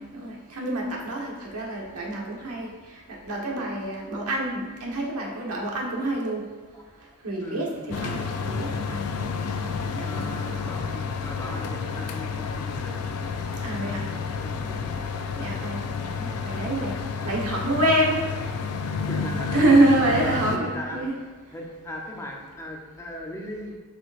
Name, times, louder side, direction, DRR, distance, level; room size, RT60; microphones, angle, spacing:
voice 1, 0.0-2.7 3.1-6.4 7.2-7.7 8.0-9.0 9.9-10.2 13.6-14.0 15.4-16.9 17.2-18.5 19.5-21.1, right 1 dB, 90° right, -2 dB, 1.3 m, -26 dB
voice 2, 7.3-8.2 10.0-13.0 13.8-15.2 19.1-19.6 20.2-21.0 21.5-23.8, left 1 dB, 15° left, 0 dB, 0.7 m, -38 dB
sound 1, 7.9-20.6, left 5 dB, 90° left, 0.4 m, -30 dB
7.6 x 4.9 x 2.5 m, 1.3 s
head